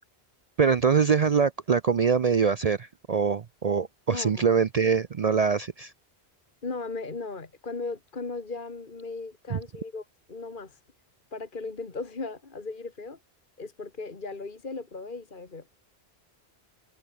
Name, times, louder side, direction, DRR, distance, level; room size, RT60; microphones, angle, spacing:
voice 1, 0.6-5.9 9.5-9.6, right 6 dB, 45° right, 0.5 m, -24 dB
voice 2, 4.1-4.6 6.6-10.8 11.3-13.2 13.6-15.7, left 3 dB, 50° left, 2.1 m, -37 dB
omnidirectional pair, 1.1 m